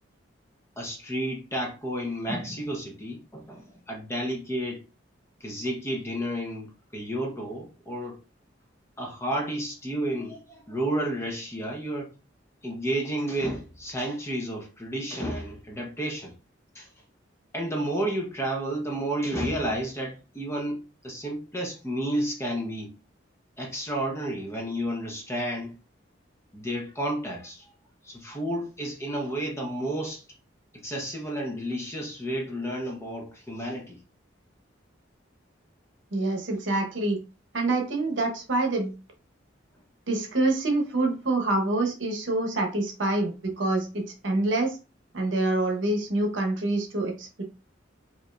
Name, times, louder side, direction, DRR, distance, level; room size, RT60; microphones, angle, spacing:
voice 1, 0.8-4.8 5.4-8.2 9.0-12.1 12.6-16.3 16.7-16.9 17.5-23.0 23.6-25.7 26.5-27.7 28.0-30.2 30.7-34.0, right 1 dB, 15° left, 0.7 m, -31 dB
voice 2, 36.1-37.2 37.5-38.9 40.1-44.8 45.1-47.4, right 2 dB, 70° right, 0.9 m, -26 dB
4.6 x 2.6 x 2.3 m
head